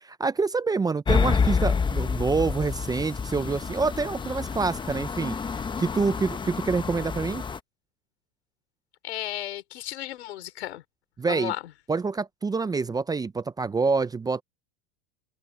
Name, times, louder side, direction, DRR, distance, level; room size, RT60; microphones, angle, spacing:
voice 1, 0.0-5.4 5.8-7.4 11.2-11.5 11.9-14.4, right 4 dB, 10° right, 0.7 m, -26 dB
Church door opening and closing, 1.1-7.6, left 5 dB, 15° left, 1.0 m, -28 dB
voice 2, 9.0-10.8 11.2-11.6, left 14 dB, 85° left, 4.4 m, -34 dB
supercardioid pair, 120°, 32 cm